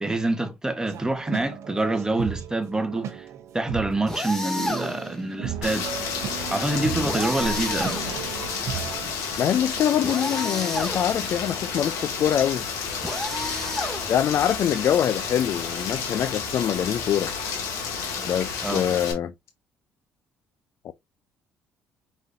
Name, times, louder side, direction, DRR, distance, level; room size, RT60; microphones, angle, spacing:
voice 1, 0.0-3.3 3.5-5.9 6.5-8.0 18.6-18.9, right 2 dB, 10° right, 1.1 m, -26 dB
sound 1, 0.9-9.1, right 9 dB, 65° right, 0.7 m, -35 dB
sound 2, 4.1-5.2 7.0-8.5 10.0-11.3 13.0-14.4, left 1 dB, 10° left, 2.2 m, -31 dB
Rain, 5.6-19.1, left 5 dB, 80° left, 1.9 m, -31 dB
voice 2, 9.4-12.6 14.1-17.3 18.3-19.3 20.8-20.9, left 10 dB, 55° left, 0.4 m, -24 dB
4.8 x 4.1 x 2.6 m
supercardioid pair, 70°, 5 cm